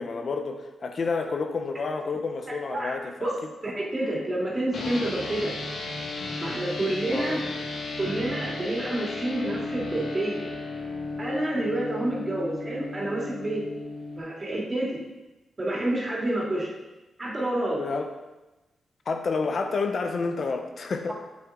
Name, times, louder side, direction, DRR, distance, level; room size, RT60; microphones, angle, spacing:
voice 1, 0.0-3.3 7.1-7.4 17.8-18.1 19.1-21.1, left 4 dB, 60° left, 6 dB, 0.8 m, -29 dB
voice 2, 3.6-5.5 6.4-7.4 8.0-10.5 11.2-13.6 14.2-15.0 15.6-16.7 17.2-17.8, right 1 dB, 30° right, -4 dB, 2.7 m, -28 dB
sound 1, 4.7-14.2, left 3 dB, 75° left, 1.6 m, -34 dB
7.6 x 7.5 x 3.7 m, 1.1 s
cardioid pair, 70°, 0 cm